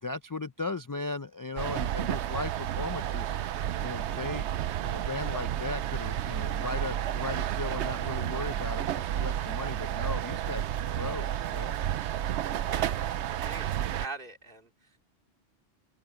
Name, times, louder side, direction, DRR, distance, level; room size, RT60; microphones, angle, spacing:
voice 1, 0.0-4.5 4.8-11.8, left 3 dB, 30° left, 0.4 m, -37 dB
sound 1, 1.6-14.1, right 11 dB, 80° right, 0.9 m, -31 dB
voice 2, 12.6-13.1 13.4-14.7, right 3 dB, 50° right, 2.7 m, -42 dB
open air
omnidirectional pair, 1.1 m